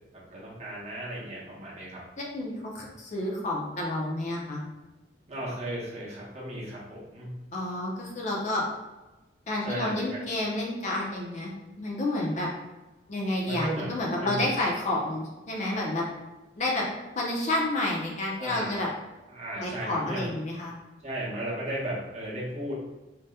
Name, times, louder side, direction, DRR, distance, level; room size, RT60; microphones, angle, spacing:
voice 1, 0.3-2.0 5.3-7.3 9.6-10.2 13.4-13.9 14.2-14.5 18.4-18.8 19.3-20.3 21.0-22.7, right 1 dB, 35° right, -6 dB, 0.8 m, -35 dB
voice 2, 2.2-4.6 7.5-8.6 9.5-11.5 11.8-12.5 13.1-16.0 16.6-16.9 17.2-18.9 19.6-20.7, left 1 dB, 40° left, -2 dB, 0.5 m, -30 dB
2.7 x 2.1 x 3.4 m, 1.1 s
head